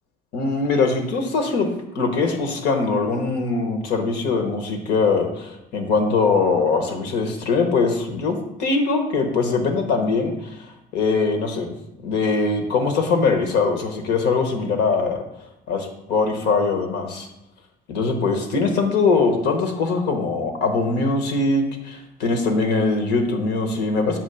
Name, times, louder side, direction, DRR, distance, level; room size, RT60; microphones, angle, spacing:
voice 1, 0.3-10.6 10.9-11.7 12.0-15.2 15.7-17.3 17.9-24.2, left 4 dB, 85° left, 4 dB, 1.1 m, -22 dB
7.2 x 2.9 x 5.6 m, 0.89 s
cardioid pair, 110°, 17 cm